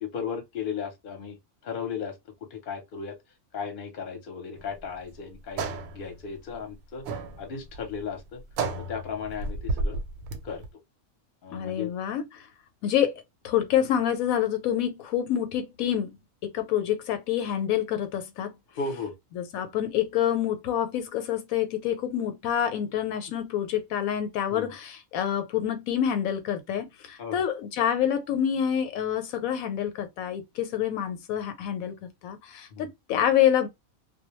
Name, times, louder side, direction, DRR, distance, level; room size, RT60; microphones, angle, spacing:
voice 1, 0.0-1.4 1.6-2.1 2.5-3.2 3.5-5.6 5.9-7.1 7.4-8.4 8.7-10.0 10.4-10.6 11.4-11.9 18.7-19.1 24.5-24.7 27.2-27.4 32.7-32.9, left 6 dB, 45° left, 0.8 m, -35 dB
sound 1, 4.6-10.7, right 3 dB, 85° right, 1.0 m, -33 dB
voice 2, 11.5-12.4 12.8-13.1 13.4-18.5 19.4-33.7, left 10 dB, 80° left, 1.0 m, -27 dB
2.2 x 2.1 x 2.9 m
omnidirectional pair, 1.4 m